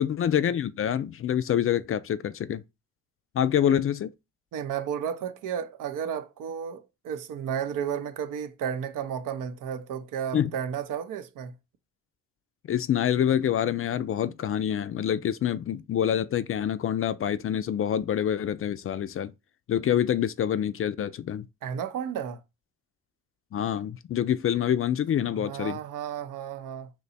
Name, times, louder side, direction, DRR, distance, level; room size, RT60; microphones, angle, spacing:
voice 1, 0.0-2.6 3.3-4.1 10.3-10.5 12.7-19.3 19.7-21.5 23.5-25.8, left 10 dB, 40° left, 0.4 m, -26 dB
voice 2, 4.5-11.5 21.6-22.4 25.3-26.9, right 8 dB, 65° right, 0.6 m, -33 dB
2.9 x 2.2 x 4.0 m
hypercardioid pair, 45°, 34 cm